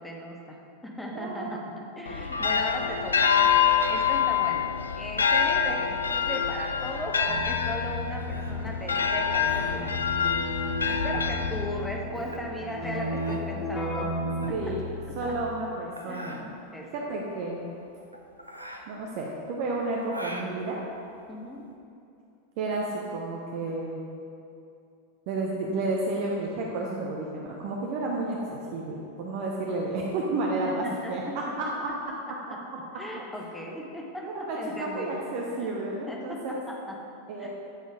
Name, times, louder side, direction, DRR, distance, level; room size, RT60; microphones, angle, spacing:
voice 1, 0.0-3.4 3.9-9.9 10.9-14.7 15.1-15.4 16.0-16.9 21.3-21.7 30.7-32.2 32.5-32.6 33.0-35.2 35.6-35.7 36.1-37.0 37.4-37.5, equal, 5° left, -1 dB, 1.1 m, -37 dB
voice 2, 1.1-1.7 14.5-14.9 15.2-16.4 16.9-17.6 18.9-20.8 22.6-24.0 25.3-31.2 31.8-31.9 34.2-36.6 37.3-37.5, right 2 dB, 45° right, -2 dB, 0.8 m, -31 dB
sound 1, 2.1-12.0, left 7 dB, 75° left, 0.4 m, -26 dB
Keyboard (musical), 7.3-15.7, left 1 dB, 25° left, 1.4 m, -34 dB
sound 2, 8.2-21.7, right 1 dB, 85° right, 0.6 m, -45 dB
9.9 x 4.0 x 4.8 m, 2.6 s
figure-of-eight pair, 90°, 0 cm